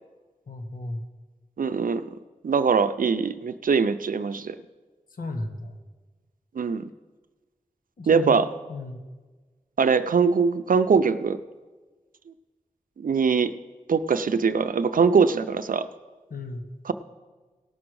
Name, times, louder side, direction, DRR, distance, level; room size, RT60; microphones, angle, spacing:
voice 1, 0.5-1.0 5.1-5.8 8.0-9.0 16.3-16.6, left 2 dB, 85° left, 5 dB, 1.2 m, -34 dB
voice 2, 1.6-2.0 2.4-4.6 6.6-6.9 8.1-8.5 9.8-11.4 13.0-13.5 13.9-15.9 16.9-17.0, right 5 dB, 75° right, 12 dB, 0.5 m, -22 dB
17.5 x 6.2 x 4.7 m, 1.3 s
wide cardioid pair, 80°, 14 cm